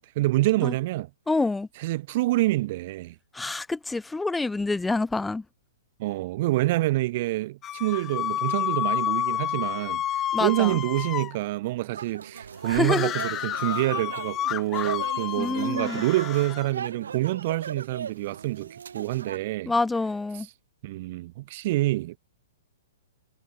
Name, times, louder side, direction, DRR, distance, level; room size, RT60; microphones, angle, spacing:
voice 1, 0.0-1.1 1.8-3.1 6.0-19.7 20.8-22.2, right 18 dB, 50° right, 6.7 m, -27 dB
voice 2, 1.3-1.7 3.3-5.4 10.3-10.8 12.6-13.1 15.4-16.0 19.7-20.5, left 3 dB, 5° left, 4.4 m, -27 dB
sound 1, 7.6-11.4 12.8-16.7, left 11 dB, 25° left, 1.0 m, -30 dB
sound 2, 11.9-19.4, right 7 dB, 80° right, 6.4 m, -38 dB
hypercardioid pair, 125°, 0 cm